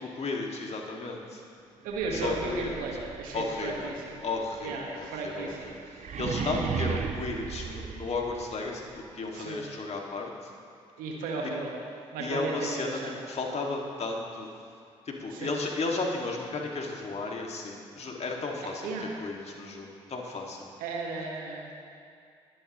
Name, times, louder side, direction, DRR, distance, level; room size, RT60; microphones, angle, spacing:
voice 1, 0.0-1.4 2.1-2.8 3.3-3.9 4.2-5.8 6.2-8.9 9.1-10.3 11.4-11.5 12.2-13.0 13.3-14.5 15.1-20.6, left 3 dB, 45° left, 0 dB, 2.2 m, -34 dB
sound 1, 1.8-8.7, right 6 dB, 55° right, 1.0 m, -37 dB
voice 2, 1.8-4.2 4.6-5.7 6.0-6.2 9.3-9.7 11.0-11.7 12.1-13.1 15.3-15.6 18.6-19.1 20.8-21.7, right 3 dB, 70° right, -1 dB, 1.6 m, -35 dB
21.0 x 11.5 x 3.1 m, 2.4 s
hypercardioid pair, 40°, 15 cm